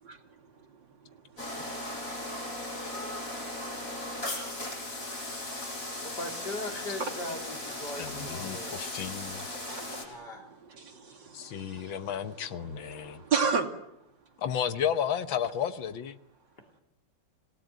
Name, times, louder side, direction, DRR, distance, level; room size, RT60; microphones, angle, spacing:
voice 1, 1.0-1.8 7.0-7.1 7.9-8.8 9.7-10.3 11.3-12.1 12.4-13.7, right 5 dB, 70° right, 4 dB, 3.1 m, -34 dB
sound 1, 1.4-10.0, left 1 dB, 45° left, 5.3 m, -37 dB
voice 2, 6.0-8.9 10.0-10.4 16.6-16.7, left 2 dB, 60° left, 2 dB, 3.8 m, -39 dB
voice 3, 8.0-9.2 11.3-13.2 14.4-16.2, left 8 dB, 85° left, 10 dB, 1.9 m, -32 dB
26.0 x 17.5 x 9.3 m, 0.86 s
omnidirectional pair, 2.1 m